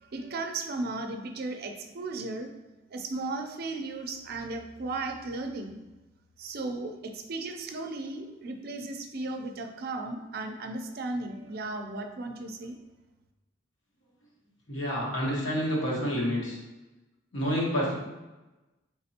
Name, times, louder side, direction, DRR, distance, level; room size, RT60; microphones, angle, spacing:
voice 1, 0.0-2.5 2.9-5.8 6.4-12.8, right 2 dB, 50° right, 5 dB, 0.4 m, -35 dB
voice 2, 14.7-16.6 17.3-18.0, equal, 70° left, -4 dB, 1.3 m, -28 dB
4.2 x 3.5 x 2.8 m, 1.1 s
head